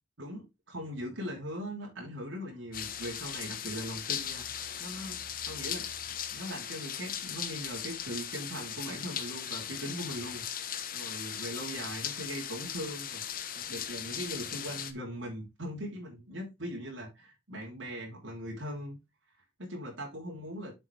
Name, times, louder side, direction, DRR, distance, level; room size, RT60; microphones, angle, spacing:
voice 1, 0.2-5.2 5.5-5.9 6.3-10.4 10.9-13.2 13.7-19.0 19.6-20.7, equal, 85° right, 3.0 m, -40 dB
sound 1, 2.7-14.9, left 9 dB, 45° left, 0.9 m, -38 dB
7.8 x 6.0 x 3.2 m
head